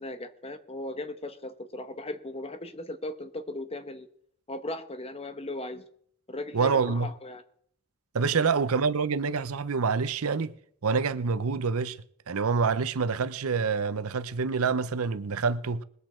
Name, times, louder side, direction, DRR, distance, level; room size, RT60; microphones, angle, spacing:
voice 1, 0.0-4.1 4.5-5.8 6.3-7.4 8.4-8.5, left 2 dB, 25° left, 1.1 m, -37 dB
voice 2, 6.5-7.1 8.1-10.5 10.8-12.0 12.3-15.8, right 5 dB, 70° right, 0.7 m, -26 dB
20.5 x 8.3 x 4.4 m
head